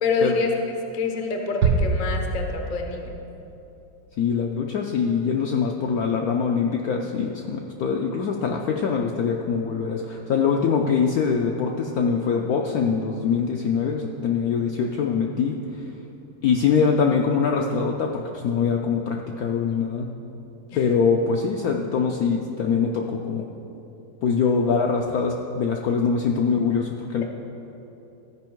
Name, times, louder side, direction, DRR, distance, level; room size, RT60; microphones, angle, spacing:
voice 1, 0.0-0.5 0.9-3.1 20.7-20.8, left 4 dB, 55° left, 3 dB, 0.5 m, -26 dB
sound 1, 1.6-3.0, right 4 dB, 70° right, 1.0 m, -23 dB
voice 2, 4.2-15.6 16.4-20.1 20.8-23.4 24.2-27.2, left 6 dB, 75° left, 1 dB, 0.8 m, -23 dB
14.0 x 5.3 x 4.5 m, 3.0 s
omnidirectional pair, 2.1 m